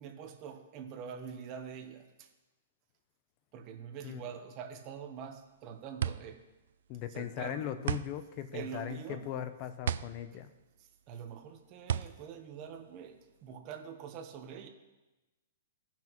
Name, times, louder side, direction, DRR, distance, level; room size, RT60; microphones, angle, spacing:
voice 1, 0.0-2.3 3.5-6.4 7.1-7.8 8.5-9.3 10.3-10.4 11.1-14.7, right 7 dB, 30° right, 5 dB, 0.9 m, -45 dB
sound 1, 5.2-13.5, right 9 dB, 65° right, 0.3 m, -37 dB
voice 2, 6.9-10.5, left 10 dB, 30° left, 11 dB, 0.6 m, -39 dB
17.5 x 5.9 x 3.0 m, 1.1 s
hypercardioid pair, 160°, 0 cm